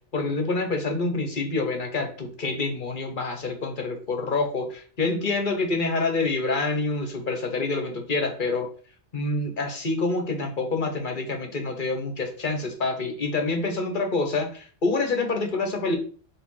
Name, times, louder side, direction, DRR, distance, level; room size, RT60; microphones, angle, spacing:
voice 1, 0.1-8.7 9.1-16.0, left 3 dB, 45° left, 4 dB, 1.2 m, -27 dB
5.0 x 3.6 x 5.5 m, 0.43 s
omnidirectional pair, 1.2 m